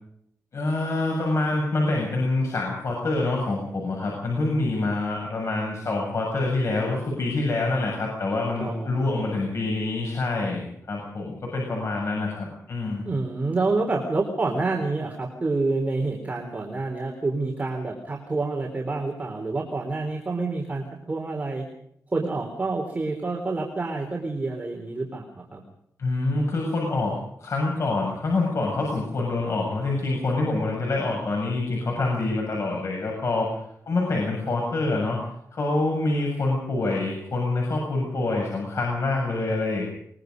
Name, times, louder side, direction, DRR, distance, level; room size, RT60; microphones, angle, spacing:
voice 1, 0.5-13.1 26.0-35.2 35.5-39.9, left 2 dB, 55° left, -1 dB, 7.4 m, -26 dB
voice 2, 8.6-9.4 13.1-21.7 22.1-25.6, right 3 dB, 25° right, 1 dB, 3.9 m, -28 dB
23.5 x 22.5 x 5.4 m, 0.72 s
wide cardioid pair, 120°, 6 cm